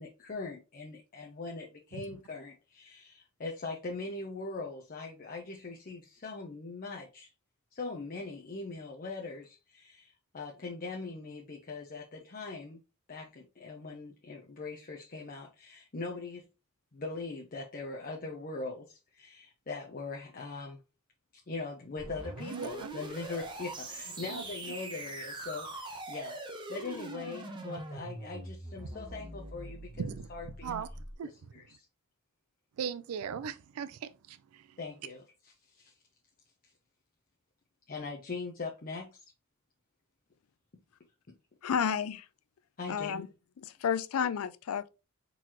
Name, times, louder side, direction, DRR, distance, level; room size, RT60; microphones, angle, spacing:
voice 1, 0.0-7.3 7.7-12.8 13.1-16.4 16.9-20.8 21.5-26.4 26.7-30.8 31.5-31.8 34.8-35.9 37.9-39.2 40.7-40.8 42.8-43.3, left 3 dB, 40° left, 0.7 m, -41 dB
sound 1, 22.0-31.1, right 2 dB, 20° right, 0.9 m, -43 dB
voice 2, 22.5-22.9 24.3-24.4 30.0-30.9 31.2-31.5 32.8-34.8, right 7 dB, 90° right, 0.4 m, -39 dB
voice 3, 41.6-42.3 42.9-43.3 43.6-44.9, left 7 dB, 80° left, 0.4 m, -31 dB
4.6 x 3.8 x 2.9 m
head